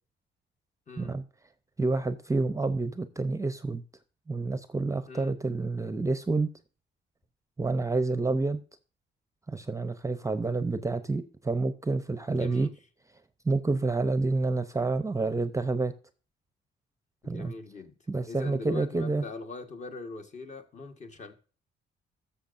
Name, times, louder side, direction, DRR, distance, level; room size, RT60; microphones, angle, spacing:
voice 1, 0.9-1.2 5.1-5.4 12.3-12.8 13.8-14.0 17.2-17.9 18.3-21.3, left 3 dB, 35° left, 1.3 m, -42 dB
voice 2, 1.8-3.8 4.3-6.5 7.6-8.6 9.5-12.7 13.5-15.9 17.3-17.5 18.1-19.2, right 3 dB, 15° right, 0.6 m, -28 dB
13.0 x 6.8 x 2.5 m
cardioid pair, 90°, 20 cm